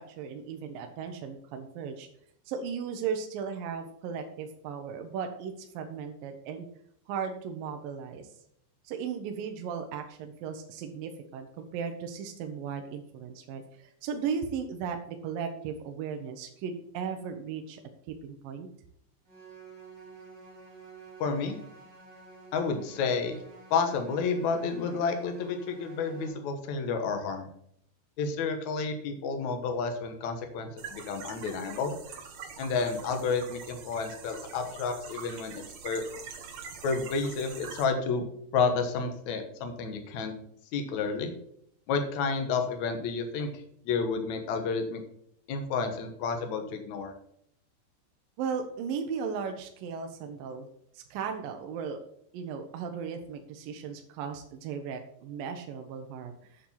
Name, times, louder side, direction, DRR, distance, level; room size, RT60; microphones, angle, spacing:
voice 1, 0.0-2.1 2.5-6.7 7.1-8.3 8.8-17.8 18.2-18.7 48.4-50.7 51.1-52.0 52.3-56.3, right 6 dB, 75° right, 5 dB, 2.1 m, -36 dB
sound 1, 19.3-26.3, right 4 dB, 5° right, 3.1 m, -49 dB
voice 2, 21.2-21.6 22.5-23.4 23.7-27.5 28.2-32.0 32.6-36.0 36.8-38.2 38.5-40.3 40.7-41.3 41.9-43.5 43.9-45.0 45.5-47.1, left 5 dB, 85° left, 5 dB, 1.6 m, -30 dB
sound 2, 30.8-37.8, right 6 dB, 60° right, 1.9 m, -44 dB
8.8 x 7.4 x 5.6 m, 0.69 s
omnidirectional pair, 5.3 m